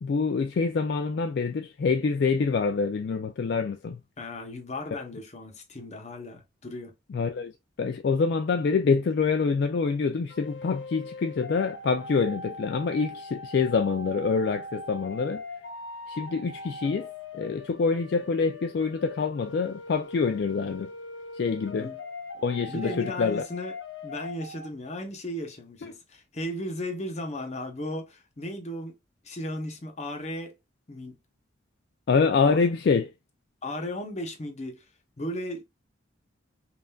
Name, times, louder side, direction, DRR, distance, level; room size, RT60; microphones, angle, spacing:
voice 1, 0.0-4.0 7.1-7.5 7.8-15.4 16.1-17.1 17.3-20.9 21.3-21.9 22.4-23.4 25.8-25.9 32.1-33.1, left 5 dB, 55° left, 0.3 m, -26 dB
voice 2, 4.2-6.9 21.8-22.0 22.7-23.8 24.0-29.0 29.2-30.5 30.9-31.1 32.4-32.7 33.6-34.8 35.2-35.6, left 1 dB, 35° left, 0.8 m, -35 dB
sound 1, 10.3-24.7, left 3 dB, 70° left, 1.0 m, -41 dB
5.5 x 2.5 x 2.3 m
head